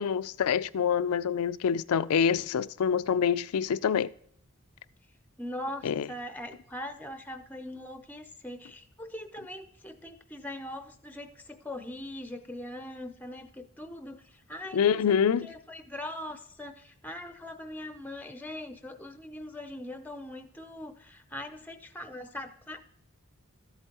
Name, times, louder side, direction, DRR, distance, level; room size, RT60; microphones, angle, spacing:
voice 1, 0.0-4.1 5.8-6.1 14.7-15.5, left 7 dB, 80° left, 0.4 m, -26 dB
voice 2, 5.4-23.0, left 1 dB, 10° left, 0.5 m, -41 dB
13.5 x 8.0 x 3.0 m
head